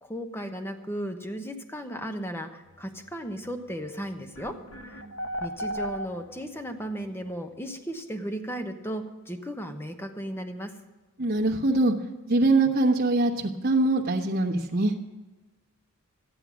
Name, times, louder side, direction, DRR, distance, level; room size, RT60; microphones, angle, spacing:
voice 1, 0.0-4.6 4.9-5.0 5.4-10.7, equal, 10° left, 6 dB, 1.0 m, -35 dB
sound 1, 3.8-3.9 4.3-6.6, equal, 75° left, 1.0 m, -34 dB
voice 2, 11.2-11.9 12.3-14.9, right 2 dB, 45° right, -2 dB, 1.1 m, -23 dB
13.5 x 10.0 x 6.1 m, 1.2 s
head